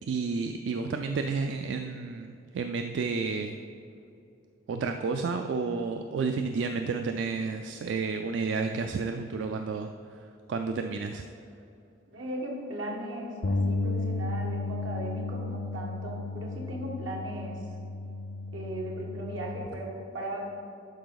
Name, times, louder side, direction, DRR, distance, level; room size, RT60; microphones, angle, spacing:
voice 1, 0.0-3.6 4.7-11.2, right 4 dB, 70° right, 6 dB, 0.3 m, -31 dB
voice 2, 12.1-17.6 18.5-20.4, right 1 dB, 90° right, -1 dB, 1.6 m, -37 dB
Bass guitar, 13.4-19.7, left 3 dB, 60° left, 0.5 m, -33 dB
11.5 x 4.7 x 3.9 m, 2.7 s
head